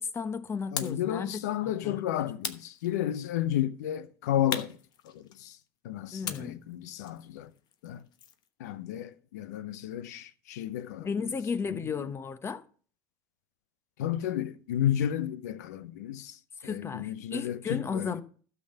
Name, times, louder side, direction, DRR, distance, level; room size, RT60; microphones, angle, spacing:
voice 1, 0.0-2.0 6.1-6.6 11.0-12.6 16.6-18.2, left 5 dB, 30° left, 1.0 m, -34 dB
voice 2, 0.7-4.8 5.0-5.6 5.8-7.5 7.8-8.0 8.6-11.1 11.7-12.1 14.0-18.2, left 11 dB, 85° left, 0.8 m, -32 dB
sound 1, 0.8-1.1 2.4-3.3 4.5-5.6 6.2-8.5, left 8 dB, 50° left, 1.1 m, -39 dB
12.5 x 6.1 x 6.7 m
supercardioid pair, 90°, 9 cm